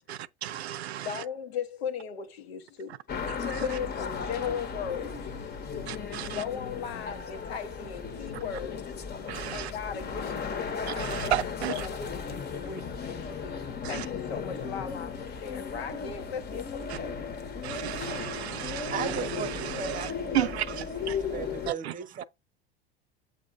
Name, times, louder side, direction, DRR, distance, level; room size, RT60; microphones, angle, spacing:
voice 1, 0.1-1.2 3.3-3.8 5.9-6.4 8.3-8.4 9.3-9.7 10.9-11.9 13.8-14.1 16.9-17.0 17.6-21.2 21.7-21.9, right 12 dB, 85° right, 0.6 m, -34 dB
voice 2, 1.0-3.0 3.6-5.5 6.3-8.9 9.5-10.8 11.2-11.3 11.7-13.6 13.9-17.2, left 7 dB, 80° left, 1.1 m, -37 dB
sound 1, 3.1-21.7, left 6 dB, 30° left, 1.0 m, -36 dB
voice 3, 18.9-20.9 21.2-22.2, right 8 dB, 25° right, 0.8 m, -37 dB
7.0 x 3.0 x 5.2 m
hypercardioid pair, 80°, 31 cm